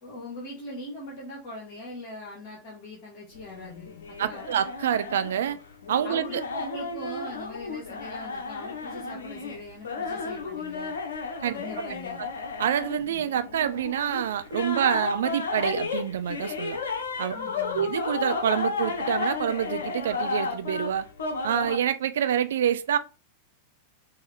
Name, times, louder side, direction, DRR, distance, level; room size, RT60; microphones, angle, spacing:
voice 1, 0.0-4.5 6.0-10.9 11.5-12.2 17.3-17.9, left 1 dB, 45° left, 1.5 m, -41 dB
sound 1, 3.3-21.8, left 4 dB, 65° left, 0.8 m, -33 dB
voice 2, 4.2-5.6 5.9-6.4 11.4-11.5 12.6-16.8 17.2-17.3 17.7-21.1 21.4-23.0, right 9 dB, 60° right, 0.4 m, -27 dB
5.5 x 2.8 x 3.3 m
figure-of-eight pair, 90°, 0 cm